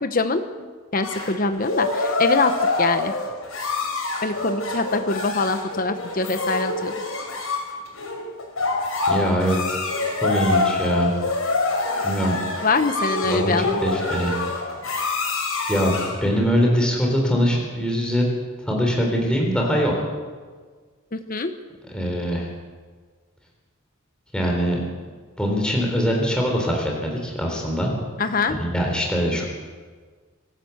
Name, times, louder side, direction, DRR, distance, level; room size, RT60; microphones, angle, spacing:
voice 1, 0.0-2.5 2.8-3.1 4.2-6.9 12.6-13.8 21.1-21.5 28.2-28.6, left 3 dB, 40° left, 8 dB, 1.0 m, -24 dB
sound 1, 1.0-16.2, left 3 dB, 85° left, 5.4 m, -26 dB
voice 2, 9.1-9.6 10.2-11.1 12.0-12.4 13.2-14.3 15.7-18.3 18.7-19.9 21.9-22.5 24.3-24.8 25.4-27.9 28.5-29.5, equal, 5° left, -1 dB, 3.8 m, -22 dB
24.5 x 13.0 x 8.0 m, 1.5 s
head